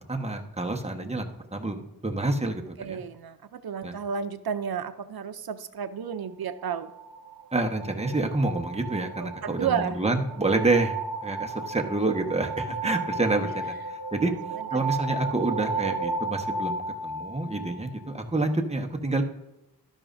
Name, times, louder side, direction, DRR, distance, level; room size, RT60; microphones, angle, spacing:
voice 1, 0.1-1.3 1.5-2.6 2.9-3.0 3.8-3.9 7.5-11.0 11.2-14.3 14.7-19.2, right 2 dB, 20° right, 3 dB, 1.2 m, -28 dB
voice 2, 2.8-6.9 9.2-10.0 14.2-14.3, right 7 dB, 85° right, 12 dB, 0.5 m, -32 dB
sound 1, 6.5-18.2, right 3 dB, 65° right, 1.0 m, -34 dB
12.5 x 10.5 x 2.6 m, 0.89 s
wide cardioid pair, 50°, 36 cm